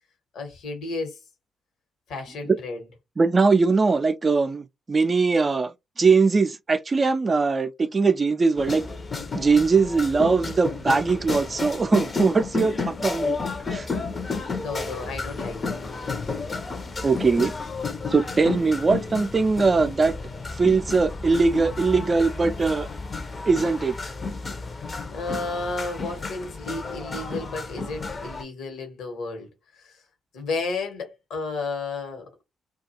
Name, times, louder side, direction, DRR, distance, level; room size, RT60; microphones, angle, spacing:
voice 1, 0.3-1.2 2.1-2.8 14.3-16.2 25.1-29.5 29.8-30.0 30.3-32.3, left 3 dB, 70° left, 1.2 m, -32 dB
voice 2, 3.2-8.9 9.3-13.4 13.7-13.9 17.0-17.5 18.1-20.2 20.6-22.9 23.5-24.0, right 4 dB, 35° right, 0.4 m, -21 dB
sound 1, 8.6-28.4, left 4 dB, 40° left, 0.7 m, -32 dB
2.4 x 2.3 x 2.9 m
hypercardioid pair, 45°, 0 cm